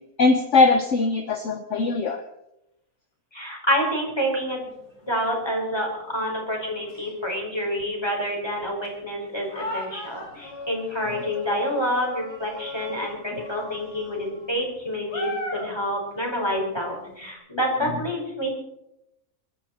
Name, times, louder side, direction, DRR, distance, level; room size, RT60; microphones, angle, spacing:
voice 1, 0.2-2.2, left 3 dB, 55° left, 7 dB, 1.2 m, -20 dB
voice 2, 3.3-4.7 5.0-18.6, equal, 15° left, 0 dB, 4.5 m, -28 dB
sound 1, 4.3-5.5 5.8-6.3 6.9-7.1 7.8-7.9 8.3-17.3, left 1 dB, 90° left, 3.6 m, -38 dB
23.5 x 12.5 x 4.4 m, 0.84 s
omnidirectional pair, 1.6 m